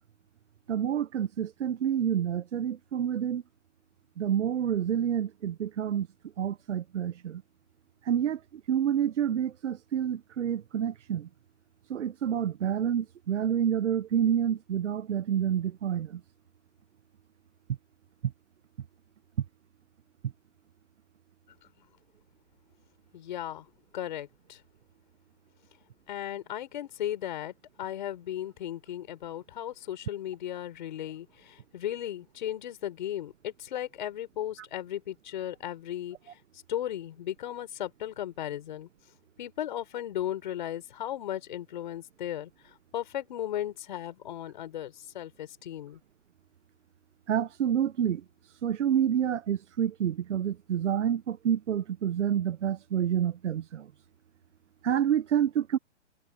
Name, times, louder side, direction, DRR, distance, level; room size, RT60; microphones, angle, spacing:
voice 1, 0.7-3.4 4.2-6.1 6.4-7.4 8.1-8.4 8.7-11.3 11.9-16.1 47.3-48.2 48.6-53.9 54.8-55.8, right 9 dB, 85° right, 0.9 m, -28 dB
voice 2, 23.1-23.7 23.9-24.6 26.1-36.4 36.7-38.9 39.4-46.0, left 11 dB, 40° left, 5.3 m, -36 dB
hypercardioid pair, 170°, 35 cm